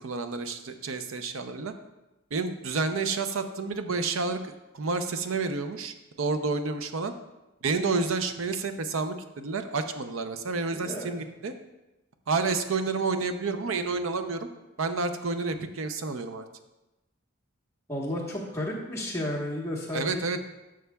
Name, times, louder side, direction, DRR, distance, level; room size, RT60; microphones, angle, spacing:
voice 1, 0.0-1.7 2.3-7.1 7.6-11.5 12.3-14.5 14.8-16.4 19.9-20.4, right 4 dB, 75° right, 9 dB, 0.6 m, -30 dB
voice 2, 10.7-11.1 17.9-20.4, left 1 dB, 15° left, -4 dB, 1.3 m, -33 dB
11.0 x 6.3 x 2.3 m, 1.0 s
head